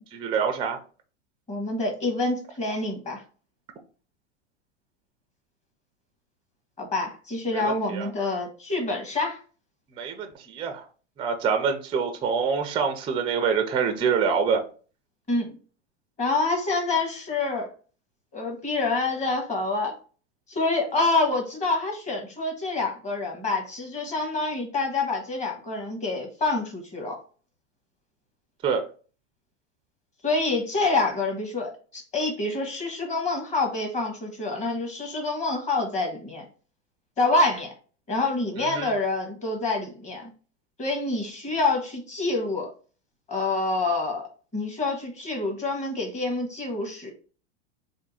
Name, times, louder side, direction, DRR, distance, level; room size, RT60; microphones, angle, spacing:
voice 1, 0.1-0.8 7.5-8.1 10.0-10.8 11.2-14.6 28.6-28.8 38.6-38.9, right 6 dB, 15° right, 6 dB, 0.4 m, -26 dB
voice 2, 1.5-3.2 6.8-9.4 15.3-15.5 16.2-17.7 18.3-19.9 20.5-27.2 30.2-36.4 37.2-37.7 38.1-40.3 40.8-42.7 43.3-47.1, left 3 dB, 20° left, 2 dB, 1.3 m, -27 dB
3.6 x 2.6 x 4.1 m, 0.38 s
supercardioid pair, 125°, 37 cm